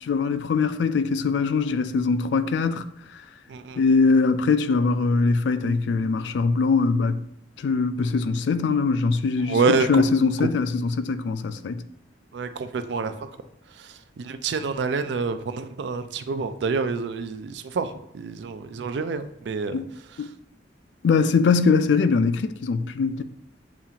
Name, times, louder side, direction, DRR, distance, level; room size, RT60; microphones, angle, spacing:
voice 1, 0.0-2.9 3.8-7.2 7.6-11.8 19.7-19.8 20.2-20.3 21.0-23.2, left 4 dB, 75° left, 0.3 m, -22 dB
voice 2, 3.5-3.8 9.4-10.0 12.3-13.3 13.8-19.8, right 4 dB, 70° right, 0.4 m, -27 dB
7.0 x 2.4 x 2.8 m
head